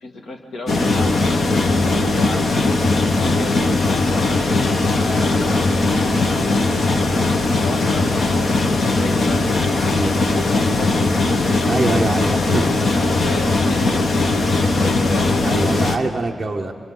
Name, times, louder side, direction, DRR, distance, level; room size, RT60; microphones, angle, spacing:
voice 1, 0.0-4.4 5.0-6.4 7.0-9.5 9.7-11.0 12.3-15.9, left 1 dB, 65° left, 2 dB, 2.2 m, -33 dB
sound 1, 0.7-16.0, left 3 dB, 45° left, 1.0 m, -19 dB
voice 2, 11.7-12.7 15.4-16.7, right 2 dB, 15° right, -1 dB, 0.9 m, -23 dB
27.0 x 25.0 x 3.9 m, 2.1 s
wide cardioid pair, 170°, 0 cm